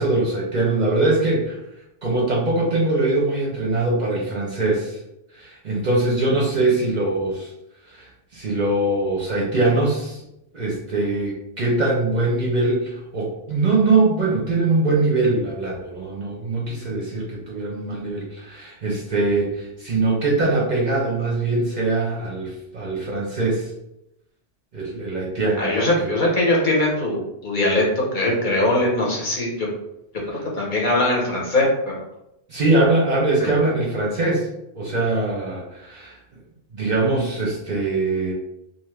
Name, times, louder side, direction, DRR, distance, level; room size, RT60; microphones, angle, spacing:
voice 1, 0.0-1.6 2.0-5.0 5.4-7.5 7.9-10.2 10.5-23.7 24.7-26.1 32.5-34.5 34.8-36.2 36.7-38.3, right 2 dB, 50° right, -3 dB, 0.6 m, -22 dB
voice 2, 25.6-29.7 30.2-31.9 33.4-33.5, left 1 dB, 50° left, -3 dB, 0.9 m, -21 dB
2.5 x 2.4 x 3.2 m, 0.86 s
omnidirectional pair, 1.1 m